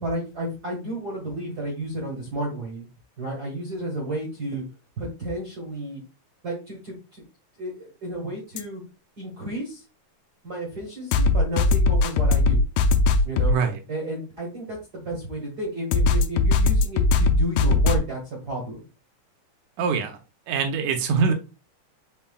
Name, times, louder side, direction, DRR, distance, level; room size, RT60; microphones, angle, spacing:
voice 1, 0.0-2.9 3.2-4.6 5.0-6.0 6.4-7.2 7.6-8.8 9.2-9.8 10.4-12.6 13.2-13.6 13.9-18.8, right 1 dB, 50° right, -2 dB, 1.1 m, -32 dB
sound 1, 8.6-8.7 11.1-13.5 15.9-18.0, left 3 dB, 80° left, 2.1 m, -19 dB
voice 2, 19.8-20.2 20.5-21.3, right 5 dB, 80° right, 5 dB, 2.2 m, -23 dB
5.7 x 3.8 x 2.2 m, 0.31 s
omnidirectional pair, 3.6 m